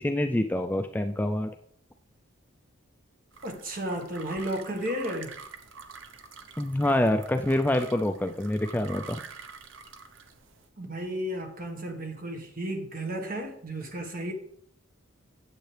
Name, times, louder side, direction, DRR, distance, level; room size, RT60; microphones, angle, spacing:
voice 1, 0.0-1.5 6.6-9.2, left 1 dB, 10° left, 0.3 m, -26 dB
sound 1, 3.3-10.7, right 5 dB, 65° right, 0.8 m, -46 dB
voice 2, 3.4-5.4 10.8-14.3, right 1 dB, 45° right, 1.5 m, -33 dB
9.1 x 7.7 x 3.3 m
head